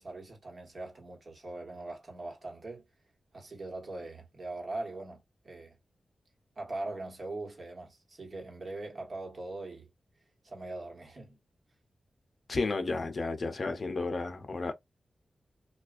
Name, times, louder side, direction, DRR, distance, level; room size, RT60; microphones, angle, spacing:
voice 1, 0.0-2.8 3.3-5.8 6.6-9.9 10.4-11.4, right 2 dB, 55° right, 1.2 m, -41 dB
voice 2, 12.5-14.7, left 3 dB, 60° left, 0.6 m, -32 dB
2.4 x 2.2 x 2.4 m
cardioid pair, 55°, 0 cm